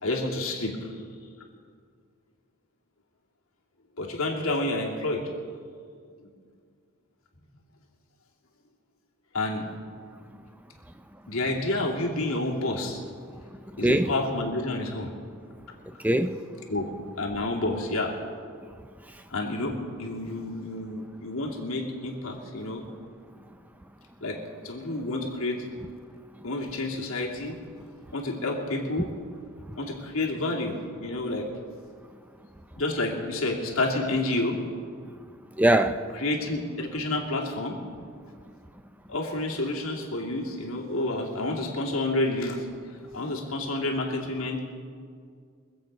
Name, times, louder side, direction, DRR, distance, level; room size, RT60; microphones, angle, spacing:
voice 1, 0.0-1.0 4.0-5.2 6.2-6.3 9.3-9.7 11.3-13.1 13.8-15.1 16.7-16.9 17.2-18.1 19.3-22.8 24.2-24.4 24.6-25.6 26.4-27.6 28.1-29.1 29.8-31.5 32.8-34.6 36.2-37.8 39.1-42.7 43.1-44.6, left 2 dB, 75° left, 2.6 m, -29 dB
voice 2, 13.7-14.1 15.8-16.4 19.1-19.2 29.7-29.8 35.5-36.1, right 1 dB, 5° right, 0.4 m, -23 dB
24.5 x 8.3 x 5.3 m
head